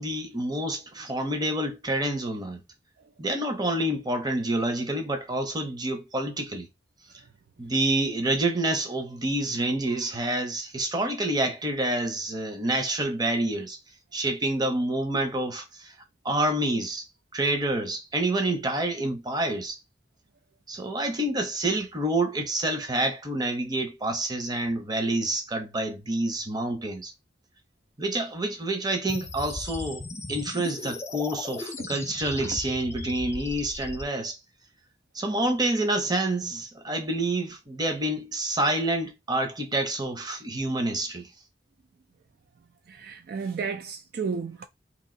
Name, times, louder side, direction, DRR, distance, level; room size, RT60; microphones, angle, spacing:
voice 1, 0.0-2.6 3.2-6.7 7.6-13.8 14.1-15.9 16.2-17.1 17.3-19.8 20.7-27.1 28.0-34.4 35.1-41.3, right 1 dB, 25° right, 0.7 m, -28 dB
sound 1, 29.1-34.0, left 2 dB, 15° left, 0.4 m, -37 dB
voice 2, 42.9-44.7, right 5 dB, 60° right, 0.3 m, -33 dB
3.0 x 2.4 x 3.7 m
head